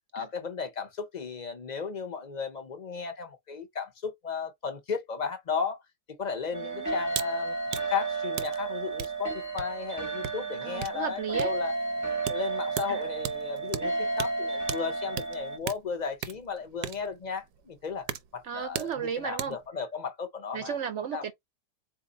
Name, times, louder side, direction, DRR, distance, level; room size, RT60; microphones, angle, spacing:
voice 1, 0.1-5.8 6.2-7.6 7.9-11.7 12.3-20.8 21.1-21.2, left 6 dB, 45° left, 0.6 m, -35 dB
sound 1, 6.5-15.6, right 3 dB, 20° right, 0.5 m, -32 dB
voice 2, 6.5-6.9 10.6-11.5 12.9-13.0 18.4-19.6 20.5-21.3, right 7 dB, 60° right, 0.8 m, -34 dB
sound 2, 7.1-7.3 7.6-19.7, right 10 dB, 80° right, 1.1 m, -39 dB
4.1 x 2.6 x 3.8 m
omnidirectional pair, 1.7 m